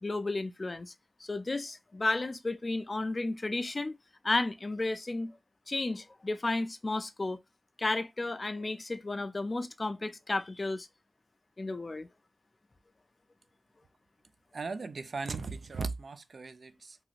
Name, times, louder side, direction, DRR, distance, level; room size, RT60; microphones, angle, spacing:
voice 1, 0.0-0.9 1.2-4.0 4.2-5.3 5.7-7.4 7.8-10.9 11.6-12.1, left 2 dB, 35° left, 0.3 m, -33 dB
voice 2, 14.5-17.0, right 4 dB, 65° right, 0.4 m, -37 dB
3.0 x 2.8 x 2.4 m
wide cardioid pair, 105°, 0 cm